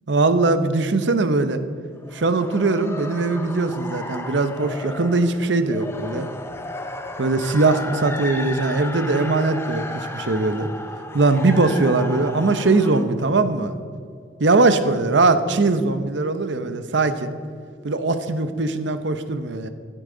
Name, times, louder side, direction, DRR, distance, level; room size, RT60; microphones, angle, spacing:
voice 1, 0.1-1.6 2.1-6.3 7.2-10.7 11.1-13.7 14.4-17.3 17.8-19.7, right 3 dB, 70° right, 10 dB, 0.8 m, -20 dB
sound 1, 2.0-13.0, left 2 dB, 15° left, 0.6 m, -34 dB
14.0 x 10.0 x 3.9 m, 2.3 s
head